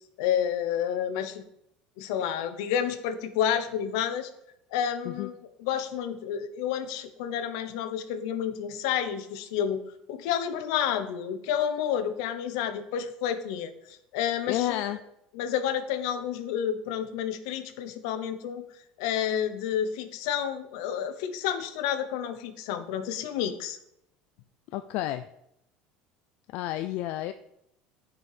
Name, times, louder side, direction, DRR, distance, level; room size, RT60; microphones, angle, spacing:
voice 1, 0.2-1.4 2.0-4.3 4.7-9.8 10.1-14.8 15.3-18.6 19.0-23.8, left 9 dB, 80° left, 10 dB, 0.9 m, -30 dB
voice 2, 14.5-15.0 24.7-25.3 26.5-27.3, left 14 dB, 65° left, 9 dB, 0.4 m, -30 dB
9.2 x 5.4 x 4.9 m, 0.80 s
supercardioid pair, 115°, 3 cm